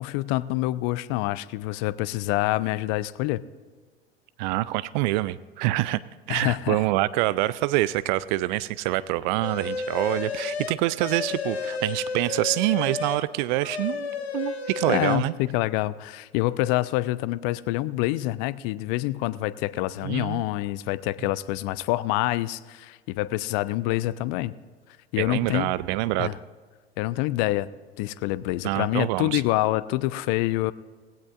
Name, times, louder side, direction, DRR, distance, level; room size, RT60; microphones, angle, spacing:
voice 1, 0.0-3.4 6.3-6.8 14.9-24.5 25.1-25.7 26.2-26.4 27.0-27.7 28.0-30.7, left 17 dB, 45° left, 18 dB, 0.5 m, -26 dB
voice 2, 4.4-6.0 6.3-14.1 14.3-15.3 20.0-20.4 25.2-26.3 28.6-29.4, right 17 dB, 45° right, 17 dB, 0.4 m, -26 dB
sound 1, 9.4-13.3 13.6-15.2, left 4 dB, 85° left, 0.9 m, -32 dB
19.0 x 16.0 x 2.5 m, 1.5 s
figure-of-eight pair, 75°, 31 cm